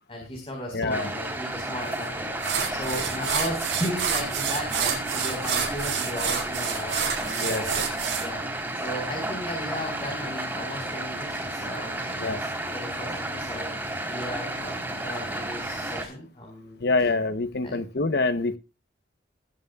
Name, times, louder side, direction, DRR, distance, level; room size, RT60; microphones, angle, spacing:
voice 1, 0.1-2.4 2.7-7.8 8.2-8.5 8.7-16.8 17.6-17.8, left 1 dB, 30° left, 4.7 m, -36 dB
voice 2, 0.7-1.1 7.4-7.6 12.2-12.4 16.8-18.6, left 3 dB, 60° left, 0.9 m, -25 dB
sound 1, 0.9-16.1, right 1 dB, 10° right, 3.8 m, -32 dB
sound 2, 1.9-2.0 2.4-8.3, right 7 dB, 70° right, 5.1 m, -28 dB
20.0 x 10.5 x 2.4 m
head